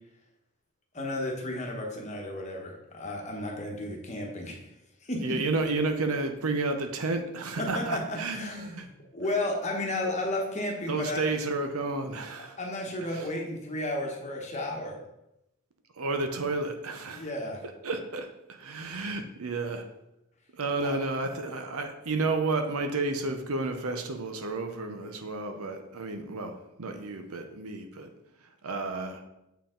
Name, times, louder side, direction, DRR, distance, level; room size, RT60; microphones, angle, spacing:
voice 1, 0.9-4.6 5.1-5.2 7.6-11.3 12.6-15.0 17.1-17.6 20.8-21.0, left 1 dB, 30° left, 0 dB, 1.1 m, -33 dB
voice 2, 5.2-8.9 10.9-12.6 13.1-13.3 16.0-17.3 17.8-19.9 20.5-28.1 28.6-29.2, right 3 dB, 70° right, 6 dB, 0.8 m, -31 dB
7.2 x 4.6 x 3.8 m, 0.87 s
head